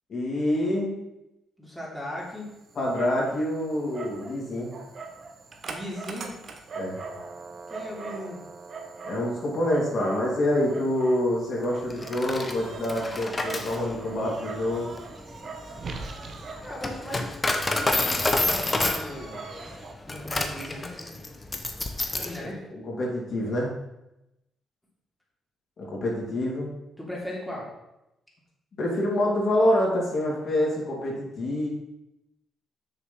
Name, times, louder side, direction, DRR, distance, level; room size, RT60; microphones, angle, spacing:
voice 1, 0.1-0.9 2.7-4.7 6.7-7.0 9.0-14.9 22.4-23.7 25.8-26.7 28.8-31.7, left 1 dB, 50° left, -3 dB, 2.9 m, -26 dB
voice 2, 1.6-2.5 5.6-6.3 7.7-8.4 16.6-17.2 17.7-20.8 22.2-22.6 27.0-27.7, left 1 dB, ahead, -5 dB, 3.0 m, -38 dB
Dog, 2.2-19.9, right 4 dB, 50° right, 1.3 m, -42 dB
Coin (dropping), 11.9-22.4, left 2 dB, 25° left, 1.1 m, -29 dB
6.5 x 6.4 x 5.5 m, 0.90 s
cardioid pair, 90°, 0 cm